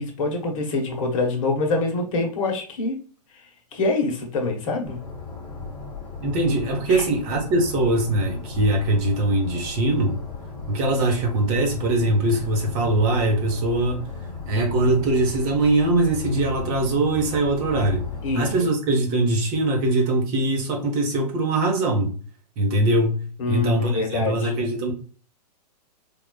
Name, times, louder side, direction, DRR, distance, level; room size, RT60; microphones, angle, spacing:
voice 1, 0.0-3.0 3.7-5.1 6.9-7.0 18.2-18.5 23.4-24.5, left 3 dB, 55° left, 1.0 m, -25 dB
sound 1, 4.9-18.6, left 4 dB, 20° left, 0.8 m, -36 dB
voice 2, 6.2-10.2 10.7-14.0 14.5-18.0 18.3-22.1 22.6-24.9, right 2 dB, 35° right, 0.8 m, -22 dB
3.6 x 2.3 x 2.2 m
hypercardioid pair, 125°, 21 cm